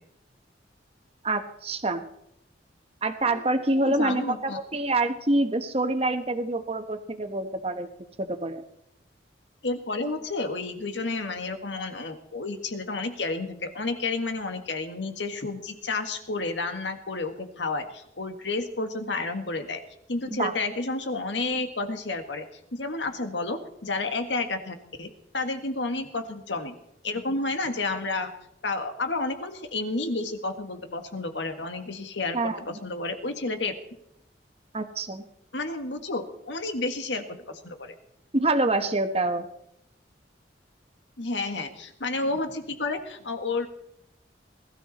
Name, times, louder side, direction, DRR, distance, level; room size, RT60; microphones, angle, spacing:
voice 1, 1.2-2.0 3.0-7.9 8.2-8.6 20.3-20.5 32.3-32.6 34.7-35.2 38.3-39.5, right 2 dB, 35° right, 8 dB, 1.2 m, -26 dB
voice 2, 3.7-4.6 9.6-19.8 20.1-22.5 22.7-26.7 27.0-28.3 28.6-33.7 35.5-37.9 41.2-43.7, left 3 dB, 85° left, 6 dB, 1.8 m, -31 dB
20.5 x 13.0 x 4.2 m, 0.79 s
head